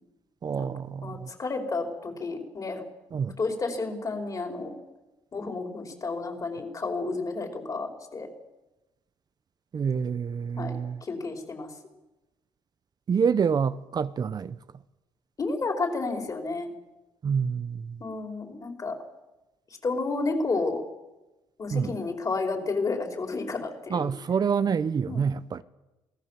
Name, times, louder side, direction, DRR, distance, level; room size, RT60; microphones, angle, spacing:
voice 1, 0.4-1.3 3.1-3.4 9.7-11.0 13.1-14.6 17.2-18.0 21.7-21.9 23.9-25.6, right 6 dB, 40° right, 0.9 m, -27 dB
voice 2, 1.0-2.8 3.4-4.7 5.3-8.3 10.6-11.7 15.4-16.7 18.0-19.0 19.8-20.8 21.6-24.1 25.1-25.2, left 3 dB, 35° left, 5.2 m, -31 dB
28.0 x 18.5 x 7.6 m
cardioid pair, 100°, 10 cm